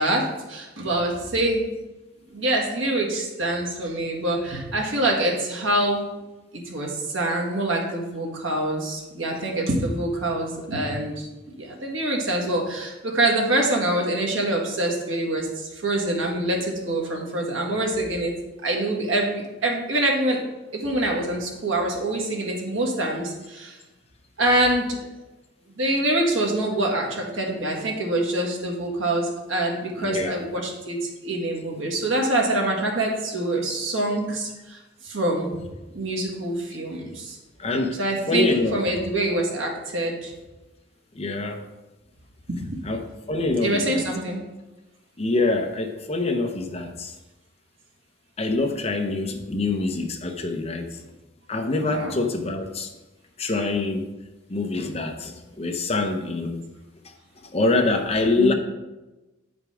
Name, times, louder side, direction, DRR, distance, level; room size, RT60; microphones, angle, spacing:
voice 1, 0.0-1.7 2.3-6.0 6.5-11.3 11.6-18.3 18.6-20.4 20.7-23.8 24.4-25.0 25.8-34.8 35.0-35.5 35.9-37.4 38.0-40.3 42.5-42.8 43.6-44.4 51.9-52.1 58.4-58.5, right 1 dB, 85° right, 0 dB, 1.8 m, -25 dB
voice 2, 30.0-30.5 37.6-38.0 38.3-38.8 41.1-41.6 42.8-44.0 45.2-47.1 48.4-51.0 51.5-52.9 53.4-54.1 54.5-56.6 57.5-58.5, left 3 dB, 30° left, 4 dB, 0.8 m, -25 dB
8.9 x 5.1 x 4.9 m, 1.1 s
head